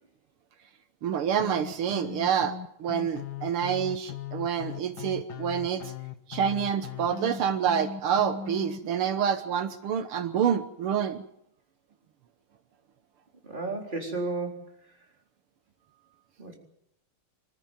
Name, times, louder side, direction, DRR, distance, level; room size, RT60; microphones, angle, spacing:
voice 1, 1.0-5.9 6.3-11.2, right 8 dB, 80° right, 10 dB, 2.0 m, -27 dB
sound 1, 1.4-8.8, left 9 dB, 55° left, 1.5 m, -39 dB
voice 2, 13.4-14.7 16.4-16.6, right 3 dB, 20° right, 1 dB, 4.1 m, -33 dB
25.5 x 14.0 x 9.1 m, 0.75 s
omnidirectional pair, 2.4 m